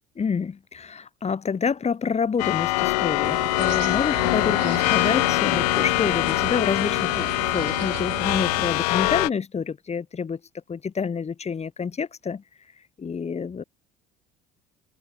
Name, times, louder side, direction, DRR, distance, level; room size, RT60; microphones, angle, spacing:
voice 1, 0.2-10.4 10.7-12.4 13.0-13.6, left 6 dB, 30° left, 7.7 m, -28 dB
sound 1, 2.4-9.3, left 21 dB, 70° left, 0.7 m, -23 dB
sound 2, 3.2-8.7, right 28 dB, 60° right, 4.4 m, -36 dB
figure-of-eight pair, 60°, 21 cm